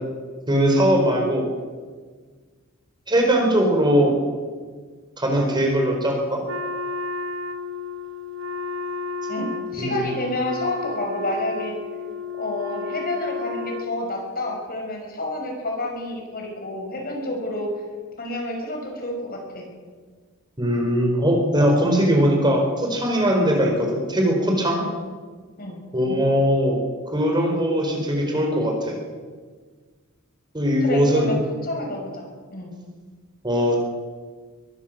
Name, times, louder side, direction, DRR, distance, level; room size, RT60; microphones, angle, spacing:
voice 1, 0.5-1.5 3.1-4.1 5.2-6.4 9.8-10.0 20.6-24.8 25.9-26.8 27.1-29.0 30.5-31.3 33.4-33.8, equal, 20° right, 1 dB, 4.7 m, -20 dB
Wind instrument woodwind instrument, 6.4-14.4, left 4 dB, 65° right, 1.3 m, -32 dB
voice 2, 9.3-11.8 12.4-17.7 18.2-19.7 24.8-25.0 25.6-25.8 30.8-31.4 31.6-32.7, left 1 dB, 45° left, 1 dB, 5.8 m, -29 dB
23.0 x 15.0 x 7.7 m, 1.5 s
head